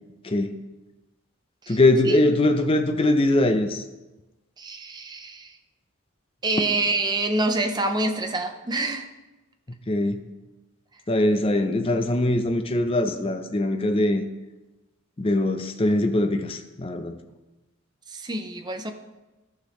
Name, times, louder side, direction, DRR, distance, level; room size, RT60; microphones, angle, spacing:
voice 1, 1.7-3.8 9.9-10.2 11.1-14.2 15.2-17.2, left 1 dB, 25° left, 7 dB, 0.5 m, -22 dB
voice 2, 4.6-5.6 6.4-9.1 18.1-18.9, right 2 dB, 20° right, 6 dB, 0.6 m, -26 dB
13.0 x 5.9 x 3.1 m, 1.1 s
head